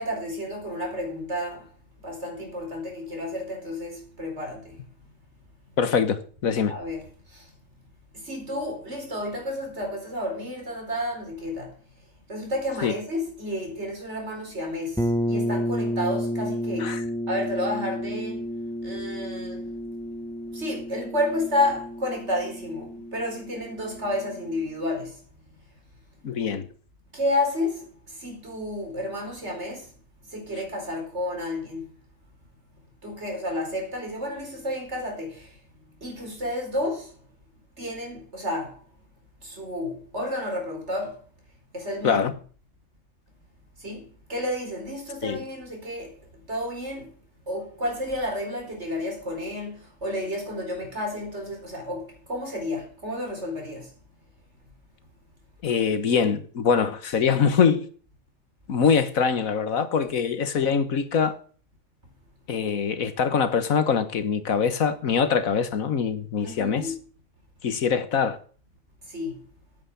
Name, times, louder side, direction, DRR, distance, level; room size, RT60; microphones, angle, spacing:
voice 1, 0.0-1.7 2.0-4.8 6.7-7.5 8.1-11.7 12.3-17.0 17.3-18.5 18.8-19.7 20.5-25.2 27.1-29.9 30.2-31.9 33.0-37.3 37.8-38.8 39.4-41.2 41.7-42.2 43.8-47.1 47.4-53.9 66.4-66.9 69.0-69.4, left 1 dB, 55° right, 4.7 m, -31 dB
voice 2, 5.8-6.7 12.8-12.9 16.8-17.0 26.2-26.7 42.0-42.3 45.2-45.4 55.6-57.9 58.7-61.3 62.5-66.9 67.6-68.4, left 6 dB, 85° left, 1.7 m, -23 dB
sound 1, 15.0-24.6, equal, ahead, 1.2 m, -31 dB
9.3 x 8.9 x 7.0 m
omnidirectional pair, 1.4 m